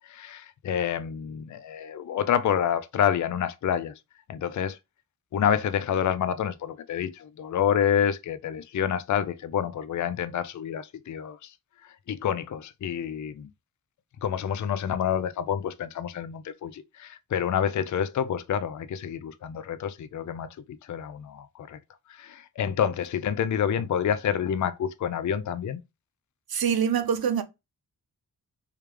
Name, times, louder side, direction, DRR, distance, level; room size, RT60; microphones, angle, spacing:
voice 1, 0.0-4.0 4.3-4.8 5.3-11.5 11.8-13.5 14.2-21.8 22.1-25.8, left 8 dB, 50° left, 0.4 m, -28 dB
voice 2, 26.5-27.4, right 8 dB, 70° right, 0.6 m, -24 dB
3.3 x 3.2 x 3.3 m
wide cardioid pair, 65°, 38 cm